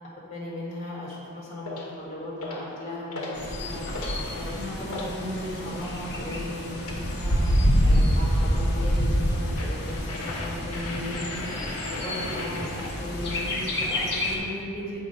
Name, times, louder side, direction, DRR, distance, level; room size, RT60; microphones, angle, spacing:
voice 1, 0.3-3.8 4.3-11.3 11.9-15.0, left 1 dB, 30° left, -6 dB, 1.4 m, -36 dB
sound 1, 1.6-1.9 2.4-2.7 3.1-3.4 3.7-5.1 6.9-7.1 9.6-14.0, left 2 dB, 75° left, 1.4 m, -36 dB
Bird, 3.3-14.4, equal, 50° left, 1.1 m, -27 dB
8.1 x 3.3 x 5.1 m, 2.4 s
head